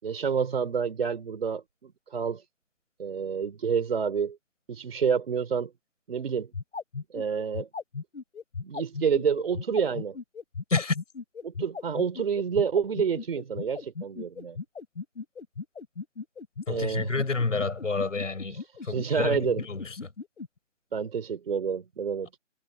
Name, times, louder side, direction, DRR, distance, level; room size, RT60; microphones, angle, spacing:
voice 1, 0.0-2.4 3.0-4.4 4.7-5.7 6.1-6.5 7.1-7.7 8.6-10.2 11.4-14.6 16.7-17.1 18.9-19.6 20.9-22.3, right 6 dB, 50° right, 4.3 m, -28 dB
sound 1, 6.4-20.5, left 5 dB, 65° left, 7.2 m, -37 dB
voice 2, 16.7-20.1, left 3 dB, 90° left, 7.7 m, -29 dB
hypercardioid pair, 160°, 37 cm